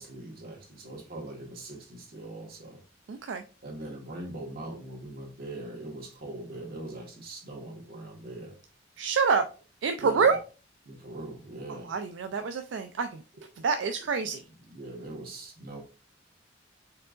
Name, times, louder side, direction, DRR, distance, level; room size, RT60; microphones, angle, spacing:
voice 1, 0.0-2.8 3.6-8.6 10.0-10.4 10.8-11.9 14.7-15.8, right 2 dB, 55° right, 0 dB, 1.5 m, -41 dB
voice 2, 3.1-3.4 9.0-9.5 9.8-10.4 11.9-13.2 13.6-14.4, right 5 dB, 70° right, 8 dB, 0.4 m, -27 dB
4.5 x 3.7 x 2.4 m, 0.34 s
head